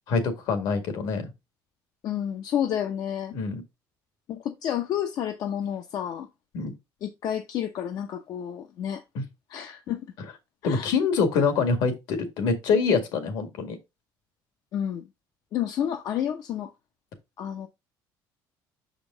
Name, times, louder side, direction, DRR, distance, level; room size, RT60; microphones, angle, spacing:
voice 1, 0.1-1.2 3.3-3.6 6.5-6.7 9.2-9.3 10.6-13.8, left 5 dB, 70° left, 1.9 m, -25 dB
voice 2, 2.0-3.3 4.3-6.3 7.0-9.0 9.5-10.1 10.6-10.9 14.7-15.1 15.5-16.7 17.4-17.7, left 10 dB, 50° left, 0.7 m, -30 dB
6.5 x 5.1 x 3.8 m
cardioid pair, 160°, 8 cm